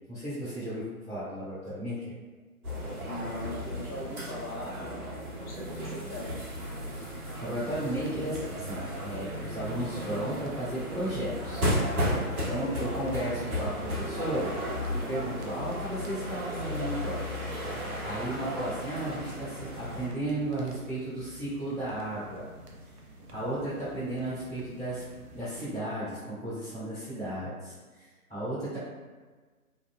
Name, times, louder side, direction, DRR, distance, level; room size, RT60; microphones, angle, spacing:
voice 1, 0.1-2.1 7.4-11.6 12.4-14.5 14.9-17.2 18.0-22.4 23.3-25.0 25.3-28.8, right 1 dB, 5° right, -26 dB, 0.6 m, -34 dB
sound 1, 2.6-20.1, equal, 65° right, 1.0 m, -34 dB
voice 2, 3.1-6.4, left 1 dB, 70° left, -3 dB, 0.8 m, -40 dB
sound 2, 7.5-25.7, equal, 85° right, 0.6 m, -50 dB
2.8 x 2.0 x 2.2 m, 1.3 s
figure-of-eight pair, 145°, 46 cm